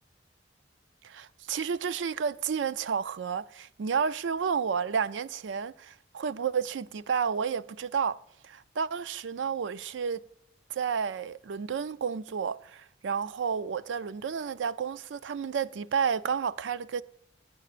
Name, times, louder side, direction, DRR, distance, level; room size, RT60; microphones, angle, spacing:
voice 1, 1.0-8.2 8.4-10.2 10.7-17.0, right 6 dB, 90° right, 0.4 m, -31 dB
17.5 x 9.4 x 2.5 m
head